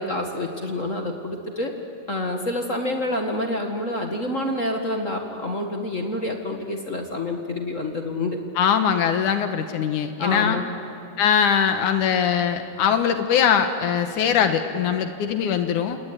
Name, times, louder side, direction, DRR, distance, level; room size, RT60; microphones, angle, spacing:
voice 1, 0.0-1.7 2.1-8.4 10.2-10.7, left 1 dB, 30° left, 3 dB, 1.6 m, -27 dB
voice 2, 8.6-10.6 11.2-16.0, left 8 dB, 80° left, 7 dB, 2.7 m, -21 dB
29.0 x 19.0 x 9.7 m, 2.5 s
omnidirectional pair, 3.5 m